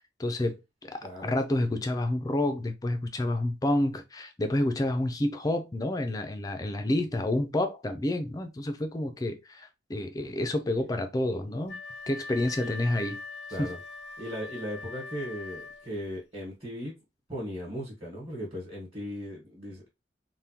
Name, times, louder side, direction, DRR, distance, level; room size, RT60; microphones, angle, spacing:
voice 1, 0.2-11.8 12.1-13.2 13.6-13.7, left 1 dB, 20° left, 0.4 m, -29 dB
voice 2, 1.0-1.4 12.6-12.7 13.5-13.8 14.2-16.9 17.3-19.9, equal, 25° right, 1.2 m, -37 dB
Wind instrument woodwind instrument, 11.7-16.1, left 3 dB, 80° left, 0.5 m, -41 dB
3.5 x 2.2 x 2.7 m
head